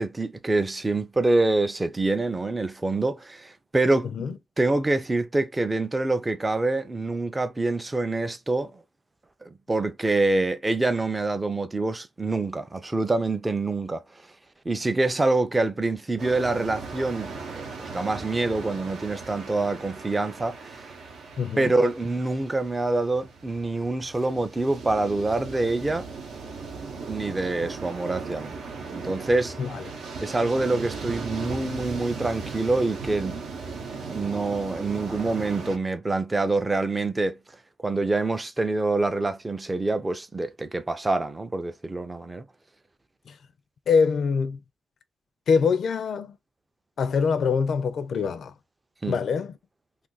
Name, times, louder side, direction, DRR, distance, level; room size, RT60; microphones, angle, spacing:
voice 1, 0.0-8.8 9.5-14.0 14.7-20.9 21.6-26.1 27.1-28.5 28.9-29.6 30.2-33.4 34.1-37.4 37.8-42.4 49.0-49.2, right 2 dB, 15° right, 0.4 m, -26 dB
sound 1, 16.2-35.8, right 4 dB, 75° right, 0.8 m, -37 dB
voice 2, 21.4-21.7 29.6-29.8 43.9-44.6 45.5-46.4 47.0-48.5 49.1-49.5, left 5 dB, 60° left, 0.4 m, -24 dB
2.6 x 2.5 x 3.8 m
cardioid pair, 130°, 0 cm